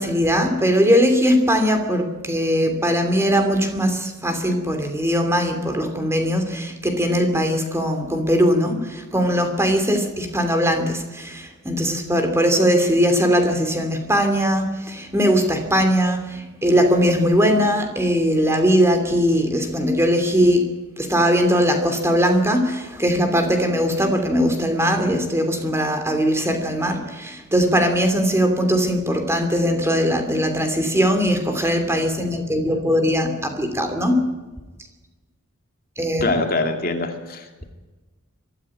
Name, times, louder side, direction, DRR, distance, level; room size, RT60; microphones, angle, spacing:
voice 1, 0.0-20.6 21.0-34.3 36.0-36.4, equal, 10° right, 5 dB, 2.8 m, -20 dB
voice 2, 36.2-37.5, left 3 dB, 45° left, 4 dB, 2.3 m, -23 dB
23.5 x 14.0 x 8.7 m, 1.2 s
head